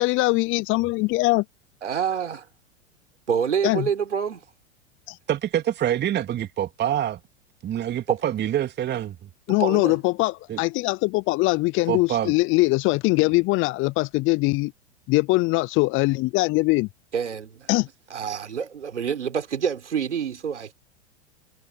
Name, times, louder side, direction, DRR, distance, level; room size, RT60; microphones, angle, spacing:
voice 1, 0.0-1.4 3.6-3.9 5.1-5.2 9.5-14.7 15.1-16.9 17.7-17.9, left 22 dB, 35° left, 0.7 m, -22 dB
voice 2, 1.8-2.5 3.3-4.4 8.1-8.2 9.6-10.0 17.1-17.7 18.1-20.7, right 7 dB, 85° right, 4.1 m, -27 dB
voice 3, 5.3-7.2 7.6-9.3 10.5-10.6 11.9-12.3, right 11 dB, 30° right, 3.0 m, -26 dB
hypercardioid pair, 100°, 35 cm